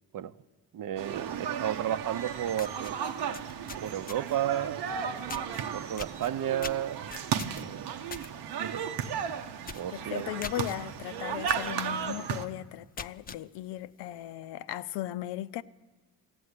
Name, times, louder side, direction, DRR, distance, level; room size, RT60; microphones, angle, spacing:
voice 1, 0.7-3.0 3.8-4.9 5.7-7.1 7.5-8.0 8.6-8.8 9.7-10.3, right 11 dB, 55° right, 0.7 m, -33 dB
sound 1, 1.0-12.5, right 8 dB, 85° right, 0.9 m, -35 dB
sound 2, 2.1-2.2 2.5-4.5 5.3-5.6 6.0-8.3 8.7-8.9 9.2-9.3 9.6-9.9 10.4-10.8 11.5-11.7 12.2-12.3 12.8-13.4, left 5 dB, 25° left, 0.5 m, -42 dB
voice 2, 9.9-15.6, left 14 dB, 85° left, 0.5 m, -37 dB
15.0 x 7.8 x 9.6 m
supercardioid pair, 65°, 40 cm